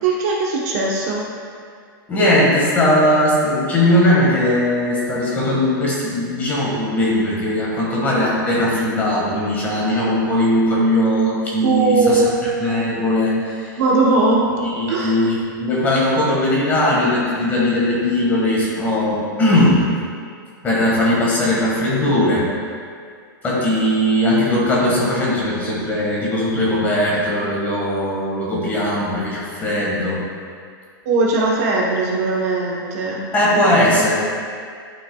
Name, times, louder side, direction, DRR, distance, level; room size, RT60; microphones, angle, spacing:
voice 1, 0.0-1.2 11.6-12.5 13.8-14.5 14.9-15.2 31.0-33.2, right 3 dB, 45° right, -3 dB, 1.0 m, -19 dB
voice 2, 2.1-12.2 12.6-13.8 14.6-19.8 20.6-22.4 23.4-30.2 33.3-34.1, left 1 dB, 15° left, -5 dB, 1.5 m, -19 dB
11.0 x 6.0 x 2.3 m, 2.1 s
supercardioid pair, 170°, 12 cm